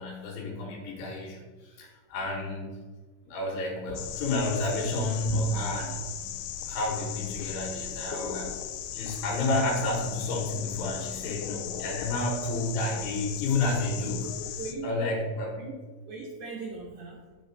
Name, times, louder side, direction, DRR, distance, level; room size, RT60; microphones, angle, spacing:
voice 1, 0.0-2.8 3.3-6.3 6.6-8.5 8.9-14.3 14.8-15.6, left 2 dB, 70° left, 0 dB, 2.7 m, -30 dB
sound 1, 4.0-14.7, left 10 dB, 90° left, 2.6 m, -37 dB
voice 2, 14.2-14.9 15.6-15.7 16.1-17.2, right 3 dB, 70° right, -3 dB, 2.0 m, -38 dB
8.6 x 5.2 x 3.8 m, 1.4 s
omnidirectional pair, 4.5 m